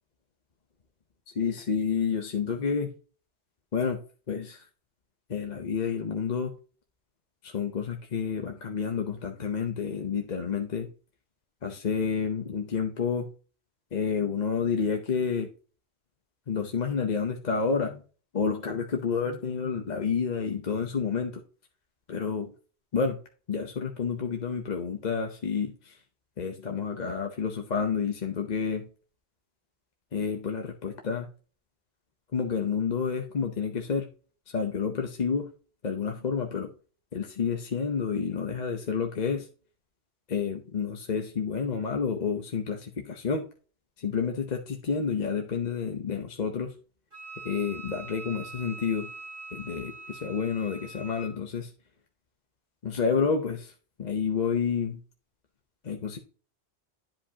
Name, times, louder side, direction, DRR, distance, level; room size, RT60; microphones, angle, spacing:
voice 1, 1.3-2.9 3.7-4.0 4.3-4.6 5.3-6.5 7.4-10.9 11.6-13.3 13.9-15.5 16.5-18.0 18.3-21.4 22.1-22.5 22.9-23.2 23.5-26.0 26.4-28.9 30.1-31.3 32.3-34.1 34.5-35.5 35.8-36.7 37.1-39.5 40.3-43.4 44.0-46.7 47.4-49.1 49.5-51.7 52.8-53.7 54.0-55.0 55.8-56.2, left 6 dB, 45° left, 3 dB, 0.8 m, -29 dB
Wind instrument woodwind instrument, 47.1-51.4, right 3 dB, 50° right, 3.4 m, -43 dB
10.5 x 5.1 x 2.8 m, 0.38 s
omnidirectional pair, 1.1 m